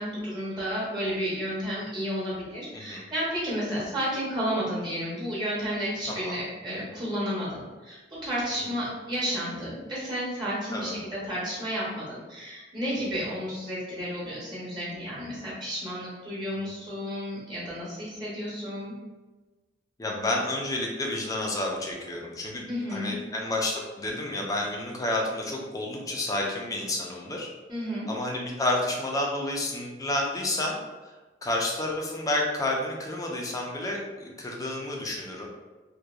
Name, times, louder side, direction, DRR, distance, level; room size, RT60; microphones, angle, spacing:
voice 1, 0.0-18.9 22.7-23.2 27.7-28.1, equal, 25° right, -7 dB, 0.9 m, -32 dB
voice 2, 20.0-22.7 22.9-27.5 28.1-30.8 31.4-35.5, left 1 dB, 20° left, -1 dB, 0.4 m, -30 dB
2.7 x 2.2 x 2.3 m, 1.2 s
head